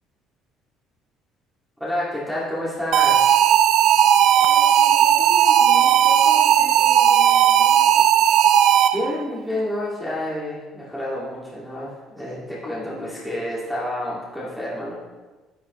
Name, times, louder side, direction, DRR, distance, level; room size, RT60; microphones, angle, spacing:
voice 1, 1.8-3.3 8.9-14.9, left 1 dB, ahead, -8 dB, 2.2 m, -29 dB
sound 1, 2.9-9.2, right 10 dB, 60° right, 0.5 m, -16 dB
voice 2, 4.4-8.1 12.6-13.1, left 2 dB, 25° left, -4 dB, 2.6 m, -38 dB
11.0 x 10.5 x 3.1 m, 1.2 s
cardioid pair, 165°, 0 cm